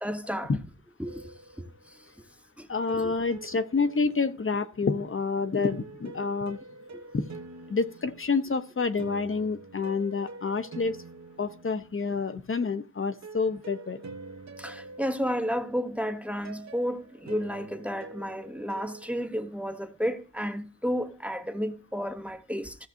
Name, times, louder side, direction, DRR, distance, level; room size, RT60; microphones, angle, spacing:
voice 1, 0.0-0.5 1.0-1.7 2.6-2.7 2.9-3.1 14.6-22.8, equal, 5° right, 0.9 m, -32 dB
sound 1, 1.0-2.1 2.9-4.7 5.6-12.3 13.2-19.2, right 3 dB, 65° right, 1.1 m, -46 dB
voice 2, 2.7-6.6 7.1-7.3 7.7-11.0 11.4-14.0, left 4 dB, 45° left, 0.7 m, -28 dB
15.0 x 7.3 x 2.6 m
wide cardioid pair, 100°, 30 cm